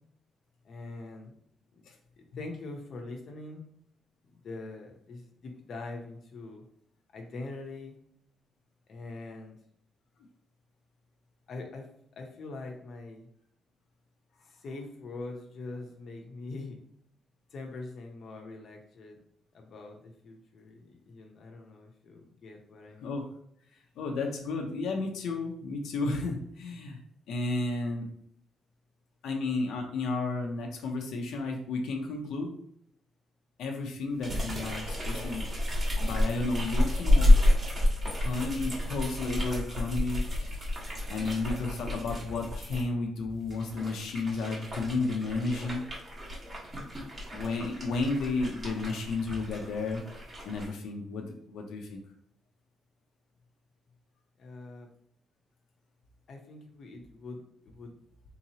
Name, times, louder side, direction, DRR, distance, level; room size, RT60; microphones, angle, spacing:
voice 1, 0.6-1.4 1.7-1.8 2.2-3.6 4.3-6.6 7.1-7.9 8.9-9.6 11.5-11.9 12.2-13.3 14.3-16.8 17.5-19.2 19.5-23.2 54.4-54.9 56.3-57.9, left 3 dB, 50° left, 1 dB, 0.6 m, -43 dB
voice 2, 24.0-27.0 27.3-28.1 29.2-32.5 33.6-37.3 38.2-40.6 41.1-45.8 47.3-52.0, left 3 dB, 85° left, 2 dB, 0.6 m, -32 dB
sound 1, 34.2-42.8 43.4-50.7, left 1 dB, 30° right, 1.1 m, -29 dB
3.8 x 2.9 x 2.8 m, 0.70 s
cardioid pair, 165°, 0 cm